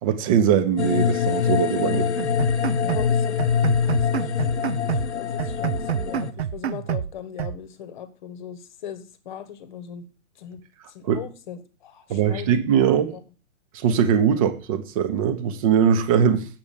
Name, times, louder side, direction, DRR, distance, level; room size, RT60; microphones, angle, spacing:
voice 1, 0.0-2.1 11.0-11.2 12.1-13.1 13.7-16.5, right 8 dB, 25° right, 1.1 m, -21 dB
sound 1, 0.8-6.3, left 7 dB, 55° left, 0.7 m, -24 dB
sound 2, 2.2-3.1 3.4-5.1 5.4-7.1 7.4-7.6, right 9 dB, 55° right, 0.6 m, -28 dB
voice 2, 2.8-3.4 3.8-10.0 10.4-10.6 10.9-12.5 12.8-13.2 14.3-14.4, left 8 dB, 35° left, 1.2 m, -40 dB
7.6 x 7.5 x 6.8 m
figure-of-eight pair, 120°, 40 cm